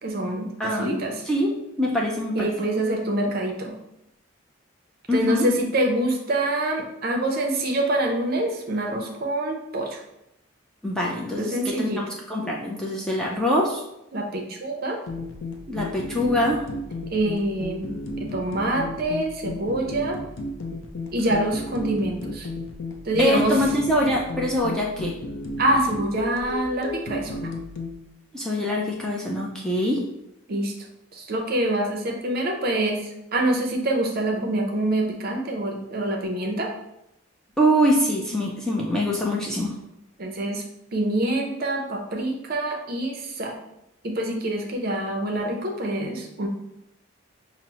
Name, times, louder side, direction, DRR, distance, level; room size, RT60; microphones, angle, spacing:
voice 1, 0.0-1.2 2.3-3.7 5.1-10.0 11.4-12.0 14.1-15.0 17.1-20.2 21.1-22.5 23.0-23.6 25.6-27.4 30.5-30.7 31.1-36.7 40.2-40.6 40.9-43.6 44.0-46.5, right 1 dB, 45° right, 2 dB, 0.6 m, -26 dB
voice 2, 0.6-2.7 5.1-5.5 10.8-13.8 15.7-16.7 23.2-25.1 28.3-30.0 37.6-39.7, equal, 5° left, -3 dB, 0.4 m, -24 dB
sound 1, 15.1-27.9, left 2 dB, 65° left, 0.5 m, -33 dB
5.6 x 2.0 x 2.9 m, 0.84 s
head